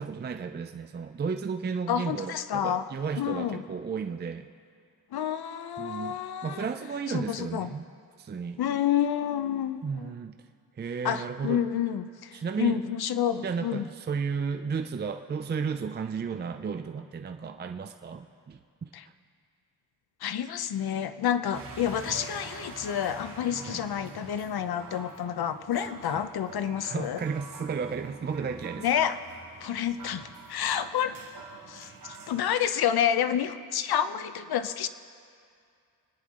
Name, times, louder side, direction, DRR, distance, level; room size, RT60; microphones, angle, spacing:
voice 1, 0.0-4.5 5.8-7.9 8.2-8.6 9.8-10.4 10.8-11.6 12.3-12.8 13.4-18.9 23.7-23.8 26.8-28.9, right 5 dB, 25° right, 6 dB, 0.5 m, -33 dB
voice 2, 1.9-2.9 3.2-3.6 5.1-6.7 7.1-7.7 8.6-10.1 11.0-13.8 18.9-19.0 20.2-27.2 28.8-29.2 29.6-31.2 31.7-34.9, left 9 dB, 75° left, 12 dB, 0.7 m, -29 dB
sound 1, 21.5-32.5, right 4 dB, 60° right, 2.1 m, -46 dB
26.0 x 10.5 x 3.7 m, 2.3 s
wide cardioid pair, 125°, 38 cm